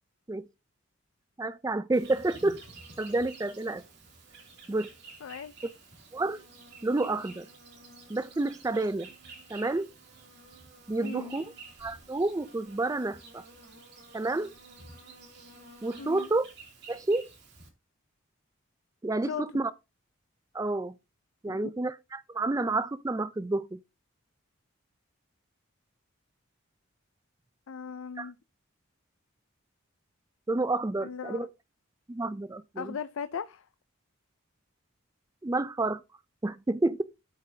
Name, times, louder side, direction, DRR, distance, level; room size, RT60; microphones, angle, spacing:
voice 1, 1.4-2.6 3.0-3.8 4.7-4.9 6.1-6.4 6.8-7.5 8.1-9.1 9.5-9.9 10.9-11.5 11.8-13.4 14.1-14.5 15.8-16.5 16.9-17.3 19.0-19.7 20.5-20.9 21.4-23.8 28.2-28.3 30.5-31.5 32.1-33.0 35.4-36.0 36.4-37.0, right 2 dB, 15° right, 0.3 m, -29 dB
Insect, 1.9-17.7, right 3 dB, 55° right, 2.7 m, -51 dB
voice 2, 5.2-5.5 11.0-11.4 16.0-16.3 19.3-19.7 21.5-21.7 27.7-28.4 31.0-31.4 32.8-33.7, left 6 dB, 80° left, 0.4 m, -38 dB
12.0 x 5.3 x 2.7 m
head